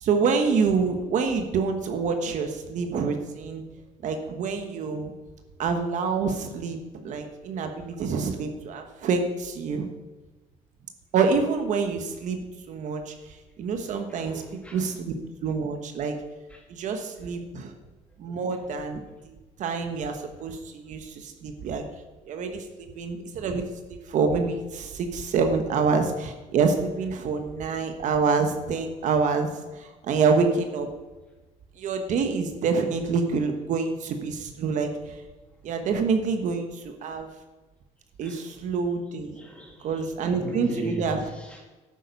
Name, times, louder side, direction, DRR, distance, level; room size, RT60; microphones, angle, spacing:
voice 1, 0.0-3.6 4.0-5.1 5.6-9.9 11.1-12.4 12.7-14.4 14.7-15.1 15.4-16.2 16.7-17.7 18.2-21.8 22.3-23.6 23.9-30.9 31.8-35.2 35.6-37.3 38.2-39.4 39.8-41.2, right 5 dB, 55° right, 5 dB, 1.3 m, -27 dB
voice 2, 14.1-14.8 16.5-16.6 38.2-38.4 39.4-40.0 40.4-41.6, equal, 10° left, -1 dB, 2.6 m, -37 dB
11.5 x 9.0 x 5.4 m, 1.2 s
cardioid pair, 155°, 15 cm